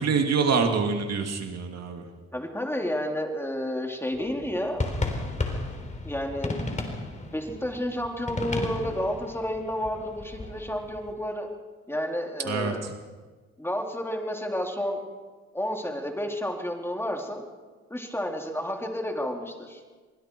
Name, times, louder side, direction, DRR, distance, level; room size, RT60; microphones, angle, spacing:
voice 1, 0.0-2.0 12.4-12.7, right 5 dB, 60° right, 4 dB, 2.7 m, -25 dB
voice 2, 2.3-4.9 6.0-6.5 7.3-11.5 11.9-12.8 13.6-15.0 15.5-17.4 17.9-19.8, equal, 10° left, 2 dB, 3.1 m, -31 dB
sound 1, 4.1-11.1, left 2 dB, 25° left, 3.7 m, -34 dB
24.0 x 23.0 x 4.6 m, 1.4 s
cardioid pair, 90°, 30 cm